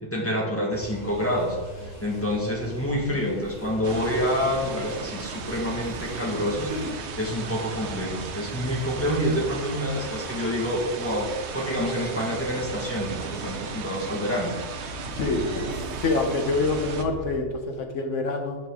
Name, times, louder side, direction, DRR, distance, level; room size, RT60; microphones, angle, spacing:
voice 1, 0.0-1.6 2.0-14.5, equal, 10° left, -2 dB, 1.7 m, -27 dB
sound 1, 0.7-17.4, equal, 20° right, 2.4 m, -40 dB
sound 2, 3.8-17.0, right 6 dB, 65° right, 1.0 m, -36 dB
voice 2, 15.1-18.6, left 3 dB, 70° left, 4 dB, 1.4 m, -26 dB
11.0 x 5.5 x 3.6 m, 1.3 s
omnidirectional pair, 1.3 m